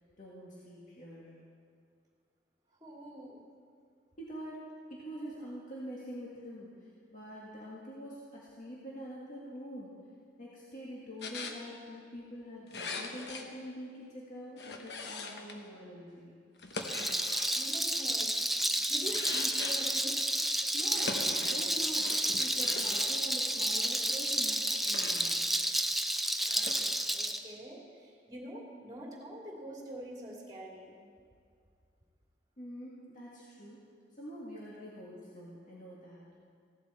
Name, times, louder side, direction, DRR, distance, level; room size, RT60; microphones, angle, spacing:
voice 1, 0.2-1.4 4.2-10.0 10.4-16.4 20.7-25.6 32.6-33.8 34.1-36.3, equal, 45° left, -6 dB, 1.8 m, -45 dB
voice 2, 2.8-3.4 17.5-18.3 18.9-20.2 27.1-30.9, equal, 20° right, -2 dB, 2.6 m, -45 dB
sound 1, 11.2-11.6 12.7-13.4 14.6-15.6 16.6-17.5 19.0-20.0 20.9-21.6 22.0-23.1 24.8-25.3 26.4-26.9, left 3 dB, 70° left, 1.1 m, -41 dB
Rattle, 16.7-27.4, right 1 dB, ahead, 0.4 m, -31 dB
16.0 x 11.5 x 4.4 m, 2.2 s
head